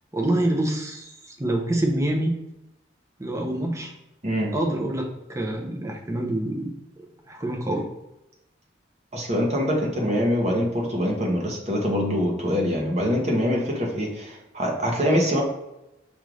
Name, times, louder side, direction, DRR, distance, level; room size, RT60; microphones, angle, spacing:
voice 1, 0.1-2.4 3.2-3.9 4.5-6.7 7.3-7.9, right 1 dB, 15° right, 0 dB, 0.6 m, -26 dB
voice 2, 4.2-4.6 9.1-15.4, equal, 35° right, 0 dB, 0.9 m, -24 dB
5.4 x 2.4 x 3.1 m, 0.94 s
head